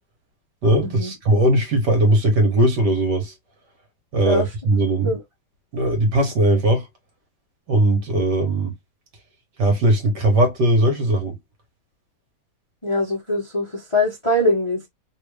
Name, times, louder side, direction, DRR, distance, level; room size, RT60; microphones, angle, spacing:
voice 1, 0.6-3.3 4.1-5.1 5.7-6.9 7.7-8.7 9.6-11.4, right 1 dB, 55° right, 1.6 m, -19 dB
voice 2, 12.8-14.9, left 1 dB, 20° left, 0.9 m, -22 dB
3.5 x 2.7 x 3.2 m
omnidirectional pair, 2.4 m